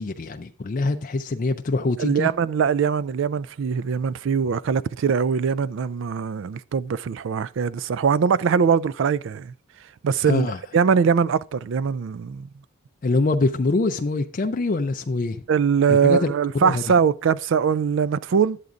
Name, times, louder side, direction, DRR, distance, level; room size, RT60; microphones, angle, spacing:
voice 1, 0.0-2.3 10.3-10.6 13.0-15.4 15.9-16.3 16.6-16.8, left 3 dB, 40° left, 0.4 m, -24 dB
voice 2, 2.0-9.5 10.0-10.5 10.7-12.5 15.5-18.6, right 6 dB, 55° right, 0.3 m, -22 dB
10.5 x 8.2 x 2.5 m
head